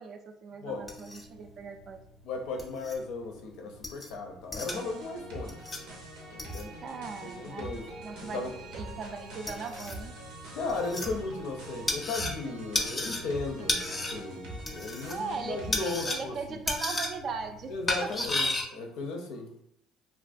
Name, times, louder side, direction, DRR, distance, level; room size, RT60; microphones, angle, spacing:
voice 1, 0.0-2.0 6.8-7.7 8.0-10.1 15.1-15.7 16.1-17.7 18.0-18.2 18.4-18.8, right 5 dB, 45° right, 7 dB, 0.3 m, -39 dB
sound 1, 0.7-18.6, left 2 dB, 25° left, 0.5 m, -35 dB
voice 2, 2.2-5.9 6.3-6.7 7.2-7.9 8.2-8.5 10.5-16.6 17.7-18.5 18.7-19.5, left 3 dB, 75° left, 3 dB, 0.5 m, -36 dB
sound 2, 4.6-16.1, right 1 dB, 90° right, 0.6 m, -44 dB
2.4 x 2.2 x 2.5 m, 0.71 s
cardioid pair, 100°, 0 cm